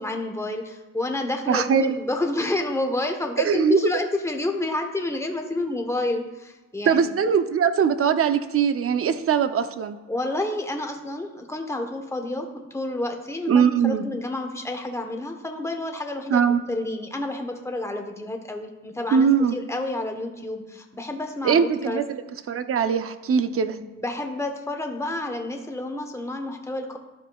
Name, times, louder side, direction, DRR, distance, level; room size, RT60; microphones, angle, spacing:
voice 1, 0.0-7.2 10.1-22.0 23.8-27.0, left 2 dB, 10° left, 3 dB, 1.0 m, -29 dB
voice 2, 1.5-1.9 3.4-3.8 6.8-10.0 13.5-14.0 16.3-16.6 19.1-19.5 21.4-22.2 22.5-23.8, right 7 dB, 50° right, 10 dB, 0.6 m, -21 dB
12.5 x 5.1 x 2.3 m, 1.1 s
cardioid pair, 90°, 30 cm